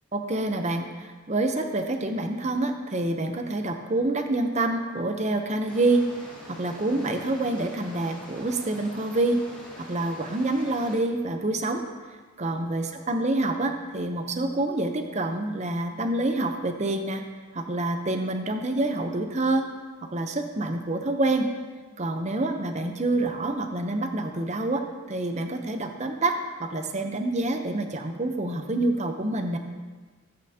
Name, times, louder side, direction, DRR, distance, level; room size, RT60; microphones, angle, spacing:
voice 1, 0.1-6.1 6.5-9.5 9.8-11.8 12.4-17.2 17.5-19.7 20.1-21.5 22.0-29.6, right 2 dB, 30° right, 6 dB, 0.7 m, -27 dB
sound 1, 5.7-11.0, equal, 5° left, 2.0 m, -45 dB
14.0 x 8.8 x 2.8 m, 1.4 s
head